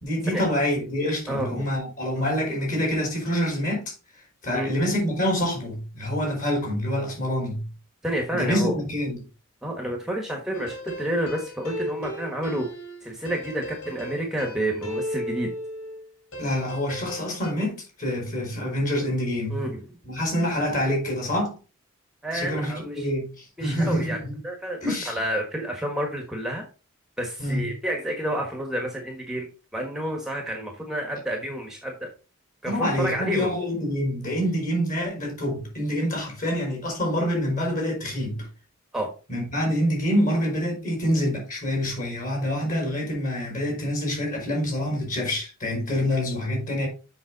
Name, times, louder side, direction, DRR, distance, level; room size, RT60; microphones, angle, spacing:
voice 1, 0.0-3.9 4.4-7.7 8.3-9.2 16.4-19.6 20.0-21.6 22.3-24.4 24.8-25.1 27.4-27.7 32.6-38.5 39.3-46.9, equal, 40° left, 4.3 m, -26 dB
voice 2, 1.3-1.7 4.5-4.7 8.0-8.7 9.6-12.7 13.0-15.5 19.5-19.8 22.2-23.1 23.6-24.2 24.4-24.8 25.0-26.7 27.2-29.5 29.7-32.1 32.6-33.5 38.9-39.1, right 1 dB, ahead, 1.4 m, -29 dB
sound 1, 10.5-16.0 16.3-17.5, left 1 dB, 75° left, 2.8 m, -36 dB
7.2 x 5.9 x 4.0 m
head